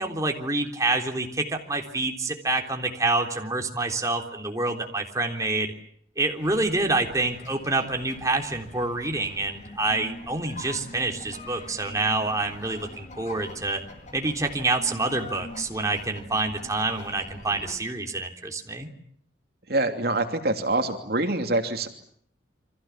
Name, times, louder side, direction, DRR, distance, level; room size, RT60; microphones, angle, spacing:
voice 1, 0.0-5.7 6.2-13.8 14.1-18.9, right 2 dB, 20° right, 2 dB, 3.6 m, -27 dB
sound 1, 6.4-17.8, left 1 dB, 40° left, 4.5 m, -44 dB
voice 2, 19.7-21.9, right 2 dB, 55° right, 5 dB, 2.9 m, -25 dB
29.5 x 25.0 x 7.4 m, 0.65 s
head